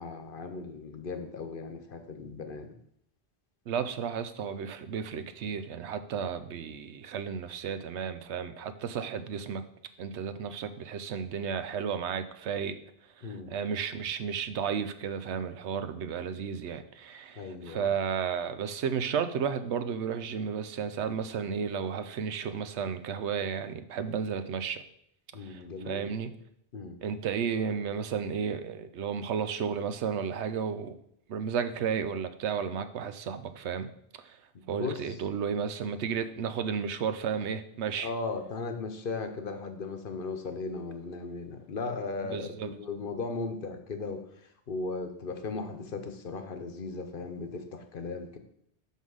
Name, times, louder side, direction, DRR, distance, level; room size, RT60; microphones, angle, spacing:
voice 1, 0.0-2.8 13.2-13.5 17.4-17.9 25.3-26.0 26.7-27.0 34.7-35.2 38.0-48.4, left 4 dB, 55° left, 7 dB, 1.0 m, -37 dB
voice 2, 3.7-9.6 10.0-12.8 13.2-24.8 25.4-26.3 27.0-31.0 31.3-33.9 34.2-34.4 34.7-38.1 42.3-42.7, right 7 dB, 85° right, 11 dB, 0.9 m, -33 dB
5.6 x 5.6 x 6.3 m, 0.72 s
omnidirectional pair, 1.1 m